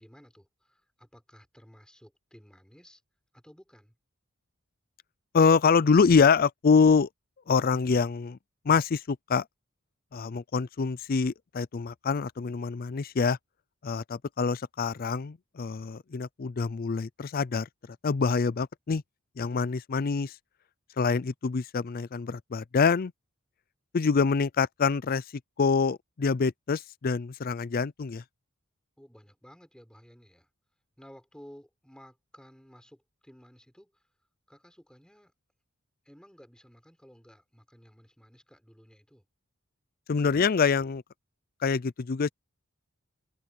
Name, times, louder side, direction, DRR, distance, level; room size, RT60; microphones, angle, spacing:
voice 1, 0.0-3.0 3.3-3.9 29.0-30.5 31.0-34.0 34.5-35.3 36.0-39.2, equal, 5° left, 4.9 m, -54 dB
voice 2, 5.3-7.1 7.5-8.4 8.7-9.4 10.1-13.4 13.8-17.7 18.0-19.0 19.4-20.3 21.0-23.1 23.9-25.2 25.6-28.2 40.1-41.0 41.6-42.3, left 5 dB, 45° left, 0.4 m, -25 dB
head